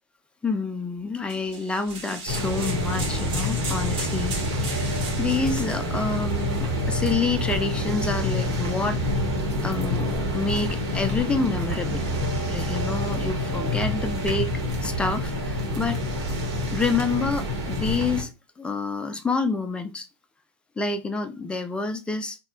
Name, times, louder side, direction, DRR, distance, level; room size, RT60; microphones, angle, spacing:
voice 1, 0.4-9.2 9.6-12.1 12.5-14.5 14.8-16.0 16.7-18.3 18.6-20.1 20.8-22.4, left 4 dB, 5° left, 0.3 m, -28 dB
sound 1, 1.3-6.7, right 4 dB, 35° right, 0.9 m, -37 dB
sound 2, 2.3-18.2, left 1 dB, 65° right, 1.0 m, -27 dB
2.8 x 2.0 x 2.3 m
hypercardioid pair, 100°, 14 cm